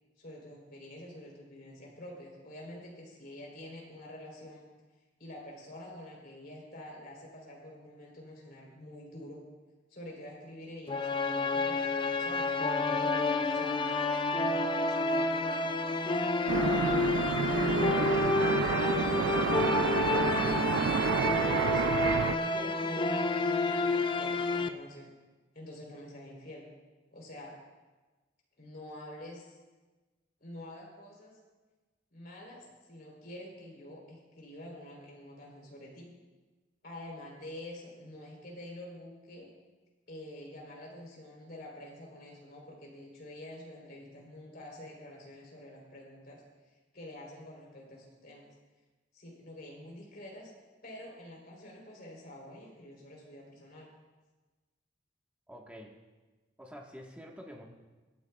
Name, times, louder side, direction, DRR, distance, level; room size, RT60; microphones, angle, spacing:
voice 1, 0.2-4.6 5.2-9.4 9.9-13.9 14.4-15.7 16.1-17.1 17.6-18.2 18.5-19.2 19.7-20.4 21.2-25.1 25.5-26.6 27.1-27.5 28.6-29.6 30.4-31.4 32.1-36.1 36.8-39.5 40.1-46.4 46.9-48.5 49.1-50.5 50.8-53.9, left 1 dB, 55° left, -3 dB, 3.6 m, -47 dB
sound 1, 10.9-24.7, left 3 dB, 25° left, 0.4 m, -29 dB
sound 2, 16.5-22.4, right 7 dB, 80° right, 0.3 m, -29 dB
voice 2, 55.5-55.9 56.6-57.6, equal, 5° right, -1 dB, 1.4 m, -47 dB
23.5 x 9.3 x 2.3 m, 1.2 s
head